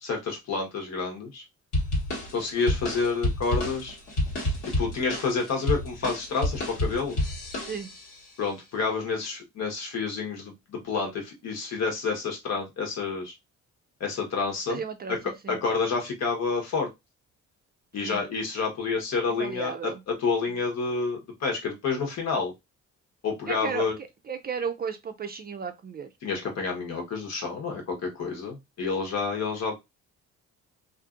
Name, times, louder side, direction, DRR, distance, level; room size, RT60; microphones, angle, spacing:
voice 1, 0.0-1.4 2.3-4.0 4.6-7.2 8.4-13.3 14.0-14.8 15.1-15.2 15.5-16.9 17.9-22.5 23.2-24.0 26.2-29.7, left 4 dB, 60° left, 1.1 m, -29 dB
sound 1, 1.7-8.2, left 1 dB, 80° left, 1.3 m, -29 dB
voice 2, 14.7-15.6 18.0-18.2 19.3-20.0 23.5-26.1, right 6 dB, 35° right, 0.4 m, -34 dB
2.6 x 2.5 x 2.4 m
cardioid pair, 90°, 30 cm